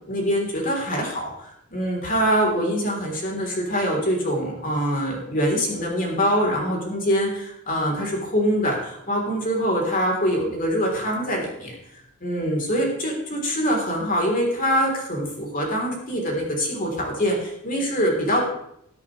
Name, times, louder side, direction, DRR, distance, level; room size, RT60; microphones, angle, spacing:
voice 1, 0.1-18.4, equal, 40° left, -1 dB, 3.6 m, -24 dB
20.5 x 8.2 x 3.3 m, 0.76 s
head